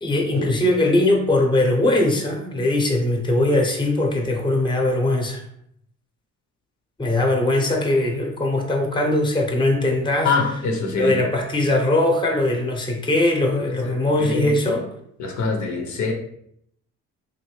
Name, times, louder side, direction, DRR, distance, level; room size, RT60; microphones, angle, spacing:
voice 1, 0.0-5.4 7.0-10.3 11.0-14.8, left 1 dB, 15° left, 1 dB, 0.7 m, -20 dB
voice 2, 10.2-11.3 13.6-13.9 14.2-14.5 15.2-16.1, left 4 dB, 70° left, 2 dB, 0.7 m, -24 dB
3.1 x 2.6 x 3.1 m, 0.72 s
cardioid pair, 90°, 30 cm